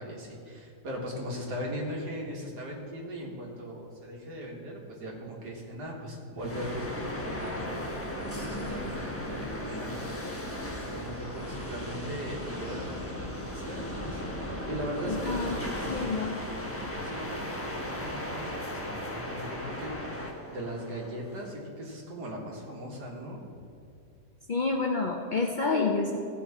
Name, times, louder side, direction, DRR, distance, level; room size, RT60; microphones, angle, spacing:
voice 1, 0.0-7.6 8.2-10.0 10.8-16.1 16.7-23.4, equal, 75° right, -2 dB, 2.3 m, -39 dB
sound 1, 6.4-21.5, left 1 dB, 10° left, 0.8 m, -36 dB
voice 2, 15.1-15.6 15.9-16.4 24.5-26.2, left 3 dB, 75° left, 1 dB, 0.4 m, -28 dB
16.0 x 5.6 x 4.2 m, 2.6 s
omnidirectional pair, 1.8 m